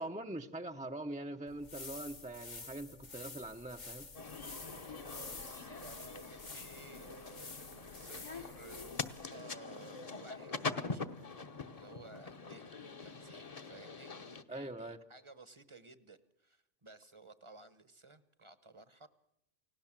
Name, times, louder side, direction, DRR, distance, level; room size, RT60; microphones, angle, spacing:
voice 1, 0.0-4.1 14.5-15.0, right 1 dB, 10° right, 5 dB, 0.6 m, -43 dB
sound 1, 1.5-9.2, left 3 dB, 75° left, 2.5 m, -50 dB
sound 2, 4.1-14.4, left 4 dB, 35° left, 0.9 m, -44 dB
voice 2, 4.8-11.1 11.7-19.1, right 3 dB, 25° right, 13 dB, 1.0 m, -56 dB
29.5 x 17.5 x 7.4 m, 0.84 s
omnidirectional pair, 1.2 m